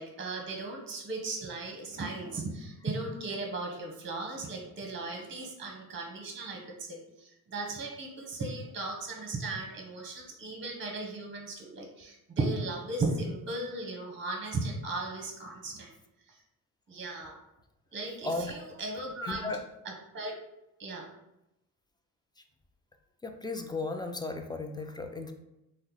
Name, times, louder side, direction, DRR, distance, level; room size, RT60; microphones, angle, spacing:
voice 1, 0.0-15.9 16.9-17.4 17.9-19.5 19.8-20.3 20.8-21.1, right 2 dB, 30° right, 1 dB, 0.8 m, -36 dB
voice 2, 19.2-19.6 23.2-25.3, left 3 dB, 10° left, 5 dB, 0.4 m, -35 dB
2.7 x 2.1 x 3.8 m, 0.88 s
supercardioid pair, 60°, 41 cm